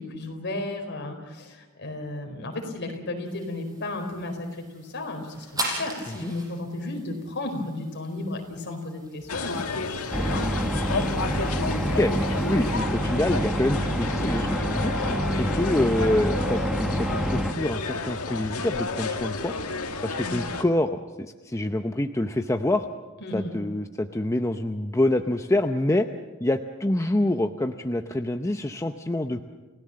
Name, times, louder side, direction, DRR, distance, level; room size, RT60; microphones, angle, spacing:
voice 1, 0.0-10.6 20.2-20.4 23.2-23.5, left 2 dB, 55° left, 3 dB, 4.5 m, -34 dB
sound 1, 3.3-12.8, right 1 dB, 15° right, 5.6 m, -40 dB
sound 2, 9.3-20.6, left 3 dB, 85° left, 1.9 m, -31 dB
sound 3, 10.1-17.5, equal, ahead, 1.3 m, -27 dB
voice 2, 12.5-14.9 15.3-19.5 20.0-20.9 21.4-22.9 23.3-26.0 26.4-29.4, left 1 dB, 15° left, 6 dB, 0.7 m, -26 dB
30.0 x 17.0 x 7.6 m, 1.3 s
head